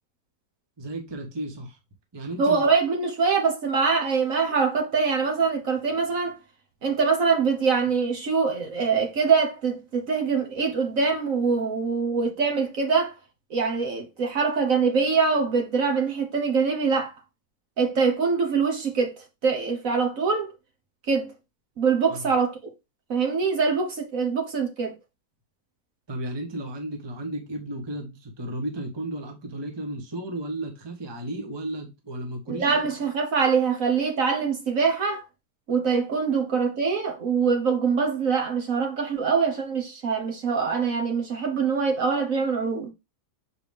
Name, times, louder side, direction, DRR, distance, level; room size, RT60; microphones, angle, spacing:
voice 1, 0.8-1.8 2.1-2.6 22.1-22.2 26.1-32.8, right 1 dB, 15° right, 1.0 m, -34 dB
voice 2, 2.4-6.4 6.8-13.1 13.5-17.1 17.8-19.1 19.4-20.5 21.1-21.3 21.8-22.7 23.1-24.9 32.5-35.2 35.7-42.9, right 5 dB, 55° right, 1.5 m, -24 dB
6.5 x 4.3 x 3.4 m
omnidirectional pair, 1.8 m